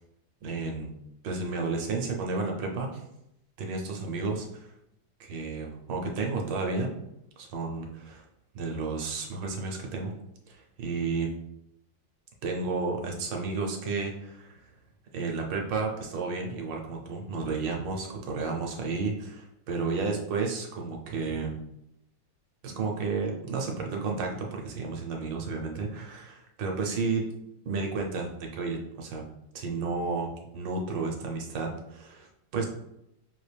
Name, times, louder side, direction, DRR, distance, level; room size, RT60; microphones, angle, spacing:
voice 1, 0.4-0.9 1.2-3.0 3.6-4.7 5.2-6.9 7.4-8.2 8.5-10.1 10.5-11.3 12.4-14.7 15.1-21.6 22.6-27.3 27.6-29.2 29.5-32.7, right 4 dB, 70° right, 1 dB, 1.4 m, -32 dB
5.8 x 2.5 x 3.3 m, 0.81 s
omnidirectional pair, 2.2 m